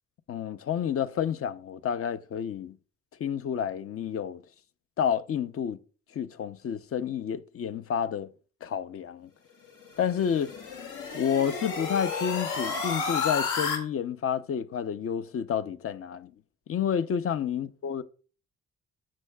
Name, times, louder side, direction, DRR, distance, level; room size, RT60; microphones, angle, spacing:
voice 1, 0.3-2.8 3.2-4.4 5.0-5.8 6.1-8.3 8.6-9.3 10.0-10.5 11.1-16.3 16.7-18.0, left 8 dB, 50° left, 0.7 m, -30 dB
sound 1, 9.8-13.8, left 5 dB, 80° left, 2.3 m, -31 dB
13.5 x 7.6 x 2.3 m
cardioid pair, 90°, 30 cm